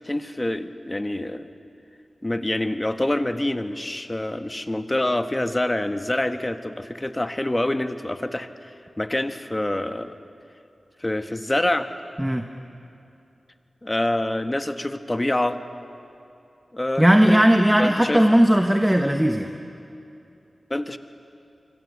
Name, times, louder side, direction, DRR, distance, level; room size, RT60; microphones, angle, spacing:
voice 1, 0.0-1.5 2.2-10.1 11.0-11.9 13.8-15.6 16.7-17.4 17.8-18.2 20.7-21.0, left 1 dB, 20° left, 9 dB, 1.2 m, -26 dB
voice 2, 17.0-19.5, equal, 10° right, 5 dB, 1.1 m, -17 dB
26.5 x 25.0 x 8.1 m, 2.7 s
wide cardioid pair, 80°, 0 cm